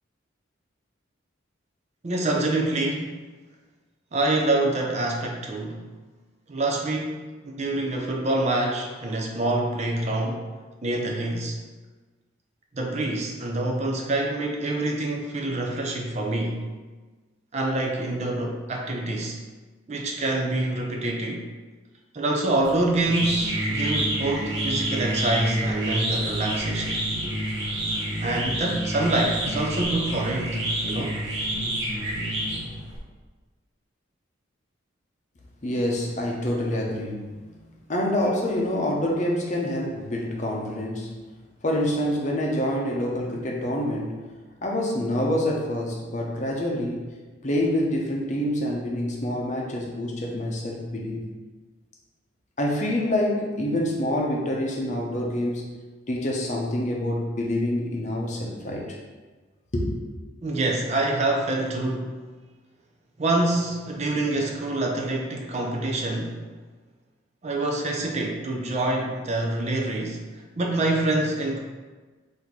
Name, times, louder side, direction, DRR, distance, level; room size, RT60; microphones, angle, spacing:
voice 1, 2.0-3.2 4.1-5.9 6.5-10.5 10.8-11.6 12.7-16.6 17.5-19.4 19.9-21.4 22.1-27.0 28.2-31.2 60.4-62.2 63.2-66.4 67.4-71.6, right 2 dB, 35° right, 1 dB, 0.4 m, -26 dB
sound 1, 22.6-33.0, right 1 dB, 60° right, 1.1 m, -28 dB
voice 2, 35.6-37.2 37.9-41.1 41.6-44.1 44.6-47.1 47.4-51.3 52.6-55.7 56.1-59.0 59.7-59.9, left 1 dB, 35° left, -1 dB, 0.7 m, -26 dB
4.1 x 2.7 x 4.5 m, 1.3 s
head